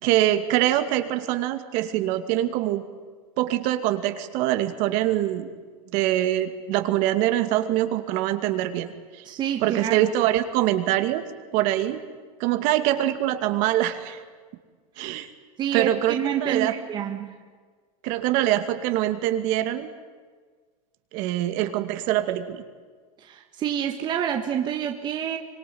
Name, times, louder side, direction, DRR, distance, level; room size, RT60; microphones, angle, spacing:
voice 1, 0.0-2.8 3.4-5.5 5.9-9.2 9.6-11.2 11.5-12.0 12.4-14.2 15.0-15.3 15.7-16.7 18.0-19.9 21.1-22.6, right 13 dB, 50° right, 9 dB, 2.5 m, -24 dB
voice 2, 9.3-10.1 15.6-17.3 23.2-25.4, right 9 dB, 25° right, 4 dB, 1.8 m, -28 dB
25.5 x 23.0 x 9.6 m, 1.5 s
supercardioid pair, 155°, 17 cm